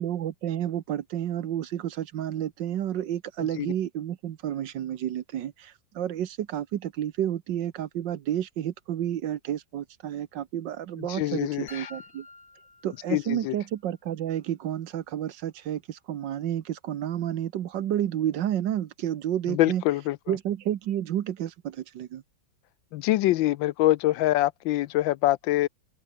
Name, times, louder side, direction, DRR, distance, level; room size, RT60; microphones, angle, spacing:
voice 1, 0.0-12.3 12.8-19.8 20.3-22.2, right 11 dB, 65° right, 1.6 m, -30 dB
voice 2, 11.0-11.9 13.1-13.5 19.5-20.4 22.9-25.7, left 15 dB, 75° left, 1.3 m, -25 dB
sound 1, 11.7-13.7, left 3 dB, 40° left, 4.6 m, -49 dB
omnidirectional pair, 2.2 m